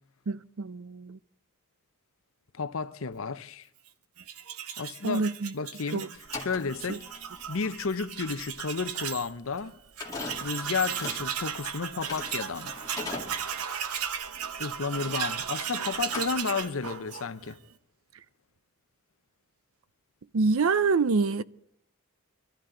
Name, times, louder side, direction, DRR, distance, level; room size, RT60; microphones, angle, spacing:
voice 1, 0.3-1.2 5.0-5.5 5.9-6.1 6.9-7.0 20.3-21.4, right 4 dB, 70° right, 0.5 m, -26 dB
voice 2, 2.5-3.7 4.8-5.2 5.5-6.0 6.4-7.0 7.5-9.7 10.4-12.7 14.6-17.6, left 4 dB, 70° left, 0.7 m, -32 dB
Tools, 4.2-9.3 9.6-9.7 10.0-17.6, right 8 dB, 90° right, 1.0 m, -36 dB
sound 1, 6.2-15.6 15.9-16.9, left 3 dB, 15° left, 2.3 m, -41 dB
23.5 x 14.0 x 3.8 m
head